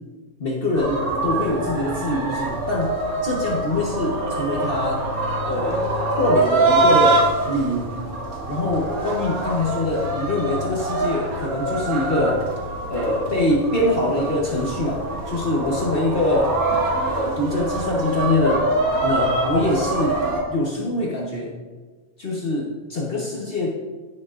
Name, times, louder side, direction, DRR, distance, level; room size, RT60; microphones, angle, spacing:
voice 1, 0.4-2.9 3.2-5.1 5.4-7.9 8.5-12.4 12.9-16.5 17.1-18.6 19.0-20.1 20.5-21.5 22.2-23.7, left 1 dB, 45° left, -2 dB, 1.3 m, -24 dB
sound 1, 0.8-20.4, right 2 dB, 90° right, 1.9 m, -24 dB
16.0 x 6.5 x 2.5 m, 1.3 s
omnidirectional pair, 1.5 m